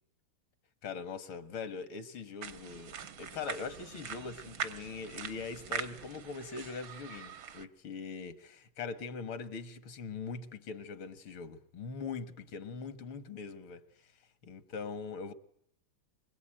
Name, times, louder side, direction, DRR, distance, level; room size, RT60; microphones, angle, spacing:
voice 1, 0.8-14.1 14.4-15.3, left 5 dB, 85° left, 2.4 m, -42 dB
sound 1, 2.4-7.6, right 7 dB, 70° right, 2.1 m, -42 dB
25.0 x 22.0 x 9.0 m
omnidirectional pair, 2.2 m